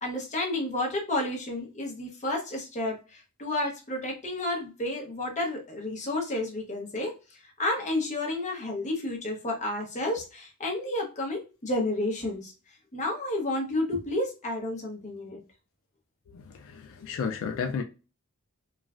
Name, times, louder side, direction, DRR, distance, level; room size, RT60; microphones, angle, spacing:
voice 1, 0.0-7.1 7.6-12.5 12.9-15.4, left 1 dB, 35° left, 0.8 m, -31 dB
voice 2, 16.3-17.8, left 6 dB, 60° left, 0.3 m, -33 dB
3.1 x 2.3 x 2.4 m
head